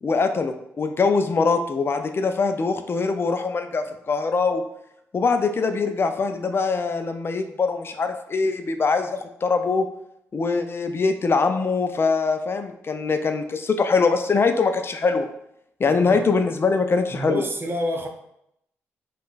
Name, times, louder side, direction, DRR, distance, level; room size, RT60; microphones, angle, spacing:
voice 1, 0.0-4.6 5.1-9.9 10.3-15.3 15.8-17.4, left 4 dB, 35° left, 7 dB, 0.4 m, -23 dB
voice 2, 15.8-16.2 17.1-18.1, equal, 35° right, 4 dB, 0.5 m, -28 dB
3.5 x 2.3 x 2.5 m, 0.77 s
hypercardioid pair, 40°, 7 cm